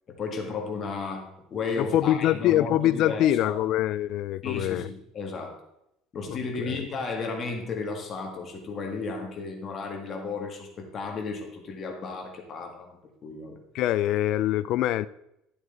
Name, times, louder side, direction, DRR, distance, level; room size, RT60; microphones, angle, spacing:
voice 1, 0.1-3.6 4.4-5.5 6.1-13.6, left 4 dB, 30° left, 1.8 m, -34 dB
voice 2, 1.8-4.9 6.3-6.8 13.7-15.1, left 13 dB, 50° left, 0.4 m, -24 dB
12.0 x 8.0 x 3.9 m
cardioid pair, 165°, 0 cm